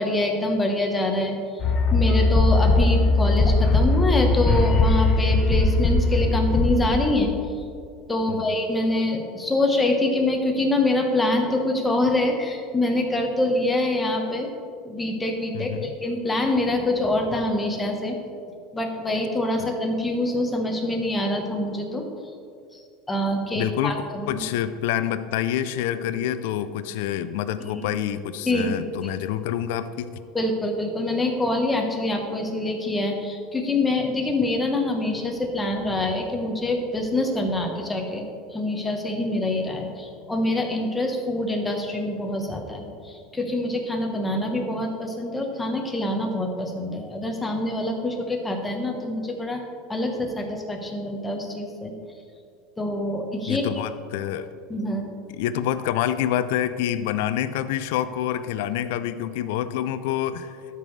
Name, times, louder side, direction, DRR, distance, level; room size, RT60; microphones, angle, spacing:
voice 1, 0.0-1.4 1.9-7.3 8.1-14.5 14.8-18.2 18.7-22.1 22.7-22.8 23.1-24.4 27.7-27.8 28.5-28.7 29.0-29.1 30.3-38.3 38.5-49.6 49.9-51.9 52.8-53.7 54.7-55.1, left 1 dB, 10° left, 2 dB, 1.1 m, -25 dB
sound 1, 1.6-6.9, left 2 dB, 40° left, 1.0 m, -19 dB
voice 2, 15.5-15.9 19.6-19.7 23.5-24.0 24.3-30.1 53.5-54.5 55.4-60.6, left 11 dB, 80° left, 13 dB, 0.4 m, -27 dB
13.0 x 5.4 x 3.2 m, 2.4 s
supercardioid pair, 130°, 0 cm